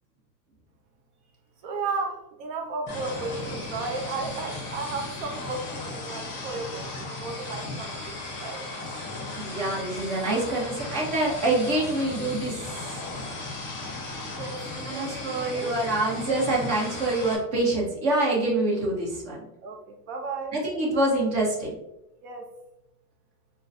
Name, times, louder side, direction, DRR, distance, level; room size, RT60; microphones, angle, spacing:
voice 1, 1.6-8.7 14.3-15.8 19.6-20.6 22.2-22.5, right 4 dB, 50° right, 3 dB, 0.7 m, -34 dB
sound 1, 2.9-17.4, left 2 dB, 25° left, 0.8 m, -36 dB
voice 2, 9.4-12.7 14.9-19.4 20.5-21.7, right 2 dB, 30° right, -3 dB, 1.1 m, -26 dB
3.9 x 2.3 x 2.6 m, 0.87 s
supercardioid pair, 145°, 49 cm